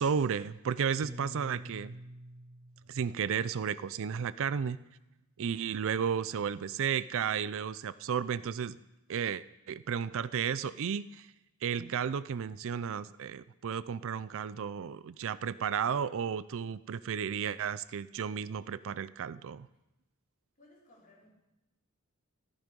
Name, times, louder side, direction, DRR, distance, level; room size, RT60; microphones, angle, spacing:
voice 1, 0.0-1.9 2.9-4.8 5.4-8.8 9.1-11.3 11.6-19.7, right 7 dB, 65° right, 17 dB, 0.4 m, -33 dB
Piano, 1.0-5.5, equal, 15° right, 1.0 m, -49 dB
voice 2, 5.6-6.4 20.6-21.3, left 1 dB, 40° left, -4 dB, 4.4 m, -62 dB
14.0 x 13.5 x 5.3 m, 0.93 s
head